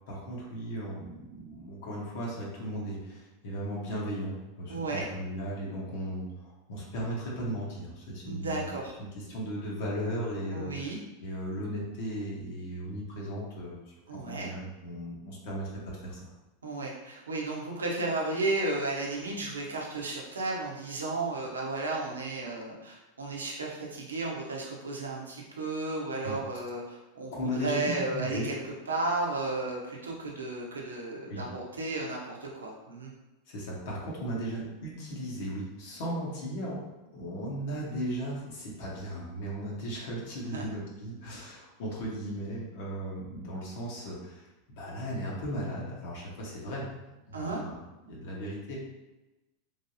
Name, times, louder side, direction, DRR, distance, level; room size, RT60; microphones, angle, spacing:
voice 1, 0.1-8.7 9.1-16.3 26.2-26.4 27.3-28.5 31.3-31.4 33.5-36.8 37.1-44.5 44.7-47.8 48.0-48.8, equal, 65° left, -4 dB, 1.0 m, -36 dB
voice 2, 4.7-5.1 8.2-8.9 10.5-11.0 14.1-14.5 16.6-28.6 28.9-33.1 40.5-40.6 47.3-47.6, right 2 dB, 90° right, -2 dB, 0.7 m, -33 dB
3.3 x 2.7 x 2.7 m, 1.1 s
hypercardioid pair, 95°, 0 cm